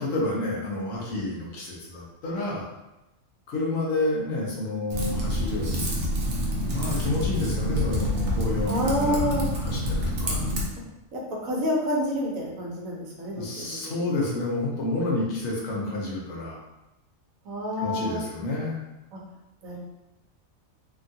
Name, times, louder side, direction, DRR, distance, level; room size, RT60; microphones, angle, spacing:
voice 1, 0.0-2.7 3.5-5.9 6.7-10.4 13.4-16.6 17.8-18.8, left 2 dB, 75° left, -3 dB, 1.1 m, -29 dB
Typing, 4.9-10.7, left 1 dB, 65° right, 0.9 m, -27 dB
voice 2, 8.7-9.5 11.1-14.0 17.4-18.2 19.1-19.2 19.6-19.8, equal, 85° right, -3 dB, 1.2 m, -28 dB
3.4 x 2.3 x 2.6 m, 0.97 s
omnidirectional pair, 1.4 m